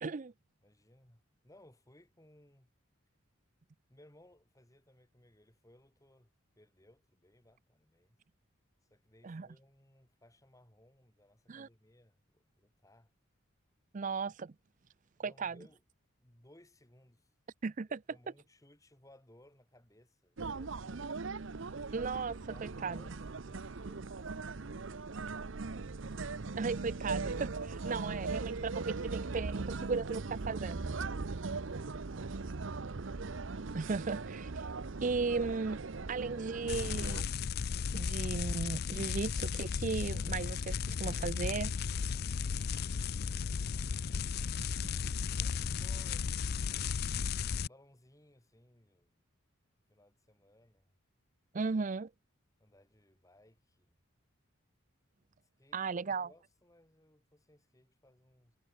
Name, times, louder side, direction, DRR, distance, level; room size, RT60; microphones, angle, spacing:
voice 1, 0.0-0.3 9.2-9.5 11.5-11.7 13.9-14.5 15.2-15.6 17.6-18.0 21.9-23.0 26.6-30.9 33.7-34.6 35.0-35.8 36.1-37.3 37.9-41.7 44.6-44.7 51.5-52.1 55.7-56.3, right 4 dB, 40° right, 0.5 m, -36 dB
voice 2, 0.6-2.7 3.9-8.2 8.9-13.1 15.2-15.8 16.2-17.3 18.1-21.1 22.4-24.8 26.1-26.5 32.2-32.8 45.4-47.0 47.6-49.2 49.9-50.9 52.6-54.0 55.6-58.6, left 1 dB, 15° left, 2.4 m, -63 dB
sound 1, 20.4-37.2, right 4 dB, 65° right, 0.8 m, -39 dB
sound 2, 36.7-47.7, left 6 dB, 50° left, 0.4 m, -35 dB
head